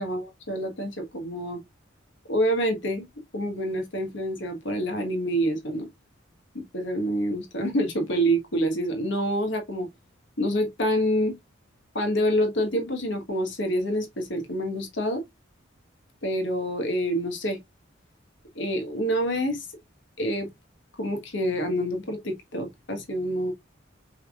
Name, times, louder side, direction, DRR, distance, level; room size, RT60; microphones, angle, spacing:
voice 1, 0.0-1.6 2.3-3.1 3.3-5.9 6.5-9.9 10.4-11.4 11.9-15.2 16.2-17.6 18.5-19.7 20.2-20.5 21.0-23.5, equal, 65° left, 1.5 m, -27 dB
5.6 x 3.6 x 2.4 m
head